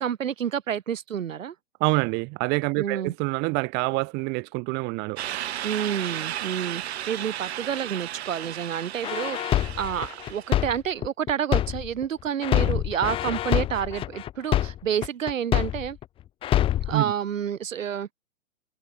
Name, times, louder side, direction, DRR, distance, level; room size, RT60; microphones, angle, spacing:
voice 1, 0.0-1.5 2.7-3.1 5.6-16.0 16.9-18.1, right 9 dB, 70° right, 4.0 m, -29 dB
voice 2, 1.8-5.2 12.7-12.8 16.9-17.1, right 29 dB, 25° right, 2.6 m, -26 dB
sound 1, 5.2-10.6, right 12 dB, 50° right, 5.5 m, -34 dB
sound 2, 9.0-12.0 12.4-16.0 16.4-17.0, left 12 dB, 15° left, 1.3 m, -25 dB
hypercardioid pair, 155°, 41 cm